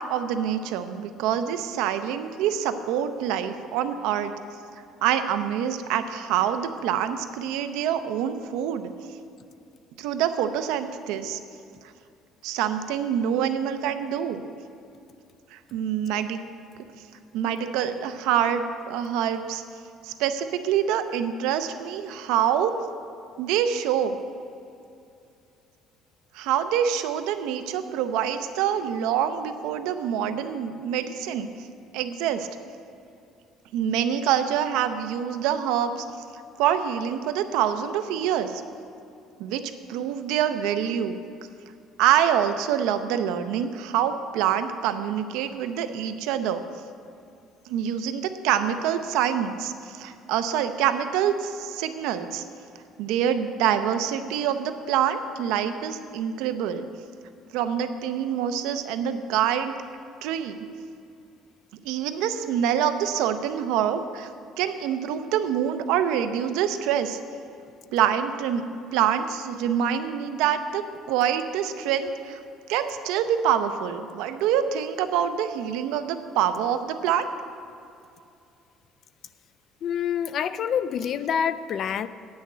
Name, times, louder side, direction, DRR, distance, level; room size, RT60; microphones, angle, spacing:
voice 1, 0.0-4.3 5.0-8.9 10.0-11.4 12.4-14.4 15.5-16.4 17.3-19.6 20.0-22.7 23.4-24.2 26.3-31.5 31.9-32.5 33.7-36.1 36.6-38.6 39.4-39.6 39.9-41.2 42.0-46.6 47.7-52.4 53.0-56.8 57.5-59.7 60.2-60.6 61.8-64.3 64.6-67.2 67.9-68.6 68.9-70.8 71.1-72.4 72.7-77.3, right 9 dB, 85° right, 9 dB, 0.7 m, -26 dB
voice 2, 79.8-82.1, left 8 dB, 40° left, 14 dB, 0.4 m, -27 dB
9.4 x 6.4 x 8.5 m, 2.6 s
cardioid pair, 160°, 0 cm